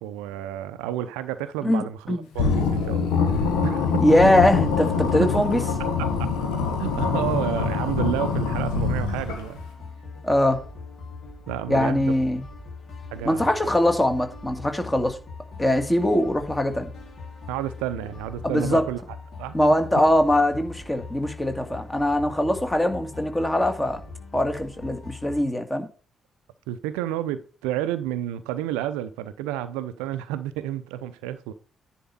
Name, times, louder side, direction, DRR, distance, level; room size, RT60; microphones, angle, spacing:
voice 1, 0.0-4.1 5.2-5.4 6.0-6.3 6.8-9.6 11.5-12.1 13.1-13.7 17.5-19.0 19.4-19.6 26.7-31.5, right 12 dB, 70° right, 0.5 m, -31 dB
voice 2, 1.6-2.3 4.0-5.6 10.2-10.6 11.7-12.4 13.3-15.2 15.6-16.9 18.4-18.9 19.5-24.0 24.3-25.9, left 1 dB, 15° left, 2.0 m, -22 dB
sound 1, 2.3-9.6, left 5 dB, 70° left, 1.5 m, -24 dB
sound 2, 8.4-25.4, left 3 dB, 55° left, 3.5 m, -41 dB
10.0 x 4.4 x 5.3 m
figure-of-eight pair, 40°, 0 cm